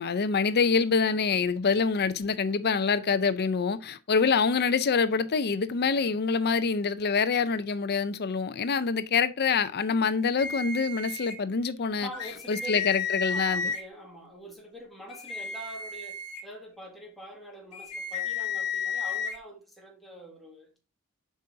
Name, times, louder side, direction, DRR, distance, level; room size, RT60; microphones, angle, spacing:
voice 1, 0.0-12.1 12.5-13.7, left 5 dB, 45° left, 0.5 m, -26 dB
sound 1, 10.4-11.3 12.1-13.8 15.1-16.4 17.7-19.4, left 5 dB, 80° left, 1.6 m, -32 dB
voice 2, 12.0-13.0 13.3-20.8, right 1 dB, ahead, 1.9 m, -45 dB
7.2 x 5.4 x 2.7 m
head